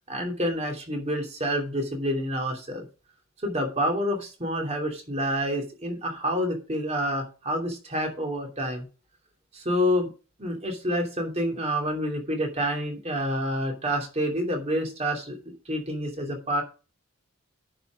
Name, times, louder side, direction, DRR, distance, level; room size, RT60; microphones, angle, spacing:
voice 1, 0.1-2.8 3.4-8.8 9.5-10.1 10.4-15.4 15.7-16.6, equal, 30° right, 2 dB, 2.8 m, -28 dB
10.0 x 5.9 x 5.2 m, 0.33 s
head